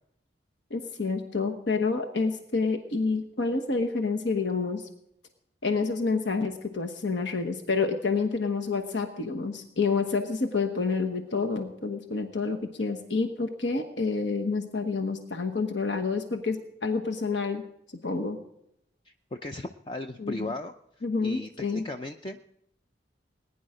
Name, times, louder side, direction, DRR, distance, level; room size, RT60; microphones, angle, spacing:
voice 1, 0.7-4.9 5.6-17.6 18.0-18.4 20.2-20.5 21.0-21.8, left 4 dB, 80° left, 4 dB, 1.1 m, -28 dB
voice 2, 19.1-20.7 21.2-22.4, left 2 dB, 30° left, 6 dB, 0.5 m, -37 dB
19.5 x 10.0 x 5.0 m, 0.80 s
head